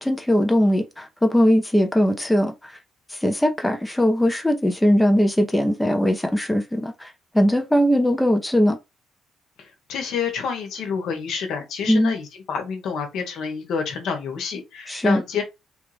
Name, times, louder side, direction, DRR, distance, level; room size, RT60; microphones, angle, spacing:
voice 1, 0.0-2.8 3.1-8.8 11.9-12.1 14.9-15.2, equal, 10° left, 0.7 m, -20 dB
voice 2, 9.6-15.4, left 6 dB, 75° left, 1.2 m, -28 dB
3.4 x 2.4 x 3.3 m
cardioid pair, 80°, 0 cm